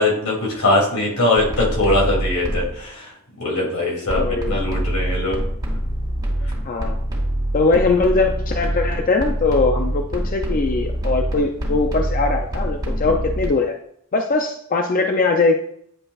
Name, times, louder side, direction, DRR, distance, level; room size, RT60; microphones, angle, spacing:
voice 1, 0.0-3.1 3.4-5.4 13.0-13.1, left 2 dB, 85° left, -3 dB, 2.7 m, -21 dB
sound 1, 1.4-2.8 4.1-13.5, right 1 dB, 20° right, 2.5 m, -25 dB
voice 2, 4.1-4.6 6.6-7.0 7.5-13.7 14.1-15.5, left 3 dB, 40° left, 3 dB, 0.5 m, -20 dB
9.7 x 5.2 x 2.4 m, 0.68 s
head